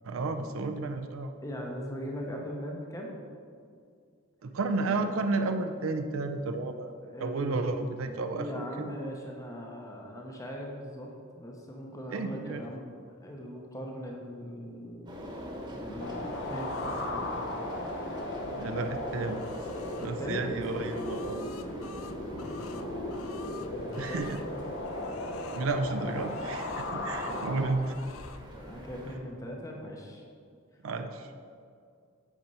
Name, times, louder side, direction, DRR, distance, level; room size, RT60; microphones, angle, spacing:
voice 1, 0.0-1.3 4.4-6.9 7.2-9.0 12.1-12.6 18.4-19.4 20.0-21.4 24.0-24.4 25.5-27.9 30.8-31.3, right 3 dB, 80° right, 7 dB, 0.5 m, -32 dB
voice 2, 1.4-3.3 5.0-5.1 7.0-7.6 8.3-12.9 13.2-15.3 15.7-17.4 20.0-20.4 22.3-23.1 23.5-24.3 27.3-27.6 28.5-30.2, equal, 15° left, 0 dB, 0.7 m, -40 dB
sound 1, 15.1-29.2, equal, 20° right, 1.1 m, -43 dB
sound 2, 16.0-27.7, left 1 dB, 60° left, 0.8 m, -37 dB
sound 3, 16.3-17.1 18.5-20.1 20.6-24.5 24.8-25.7 26.1-27.5 27.8-28.4, left 8 dB, 85° left, 0.4 m, -50 dB
8.0 x 4.4 x 5.4 m, 2.2 s
head